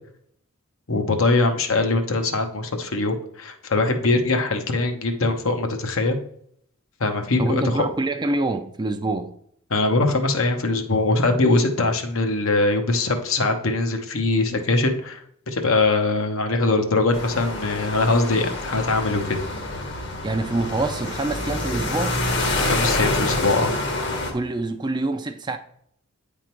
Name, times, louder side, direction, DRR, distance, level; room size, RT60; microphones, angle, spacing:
voice 1, 0.9-6.2 7.0-7.9 9.7-19.4 22.6-23.7, left 2 dB, 70° left, 1.0 m, -22 dB
voice 2, 7.4-9.3 20.2-22.2 24.3-25.6, right 2 dB, 20° right, 0.4 m, -26 dB
sound 1, 17.1-24.3, left 2 dB, 50° left, 1.2 m, -27 dB
9.1 x 3.7 x 4.5 m
head